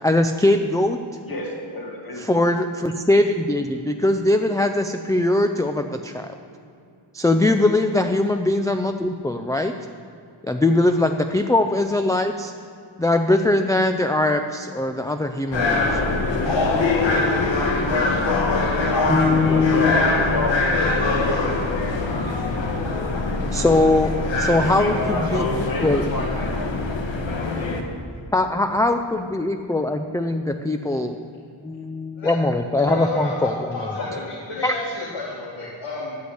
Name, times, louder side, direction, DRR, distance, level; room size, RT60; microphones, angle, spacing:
voice 1, 0.0-1.0 2.2-6.3 7.1-9.7 10.4-12.5 13.0-17.0 19.1-19.9 23.5-24.1 24.4-25.4 25.8-26.0 28.3-31.2 31.6-33.7 34.6-34.7, left 2 dB, 10° left, 6 dB, 0.3 m, -21 dB
voice 2, 1.2-2.2 7.3-7.6 10.6-10.8 18.9-20.6 24.6-26.5 34.0-34.2, left 2 dB, 45° left, -1 dB, 2.3 m, -29 dB
sound 1, 15.5-27.8, left 3 dB, 65° left, 1.4 m, -23 dB
voice 3, 32.8-36.2, left 3 dB, 85° left, -7 dB, 2.6 m, -31 dB
9.9 x 8.4 x 7.9 m, 2.4 s
wide cardioid pair, 160°, 48 cm